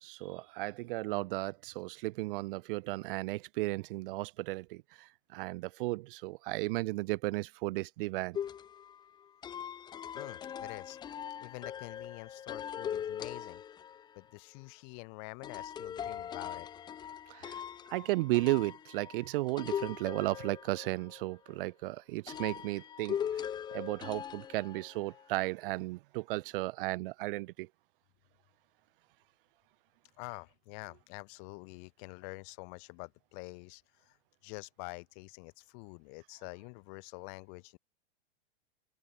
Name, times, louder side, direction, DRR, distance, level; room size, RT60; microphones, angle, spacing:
voice 1, 0.0-8.4 17.3-17.6 17.9-23.2 23.7-27.7, right 20 dB, 55° right, 0.6 m, -34 dB
sound 1, 8.3-14.2 15.4-21.5 22.3-25.2, left 9 dB, 15° left, 0.4 m, -41 dB
voice 2, 10.1-11.0 11.4-13.6 14.2-16.7 30.2-34.2 34.4-37.8, left 40 dB or more, 50° left, 6.1 m, -47 dB
hypercardioid pair, 120°, 32 cm